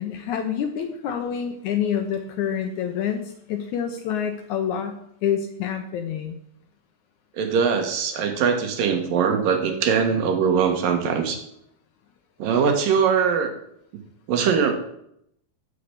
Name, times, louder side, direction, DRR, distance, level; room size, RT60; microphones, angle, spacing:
voice 1, 0.0-6.4, left 8 dB, 70° left, 6 dB, 1.9 m, -27 dB
voice 2, 7.4-11.4 12.4-13.5 14.3-14.7, right 6 dB, 70° right, 5 dB, 3.0 m, -21 dB
8.5 x 6.9 x 8.3 m, 0.73 s
omnidirectional pair, 4.1 m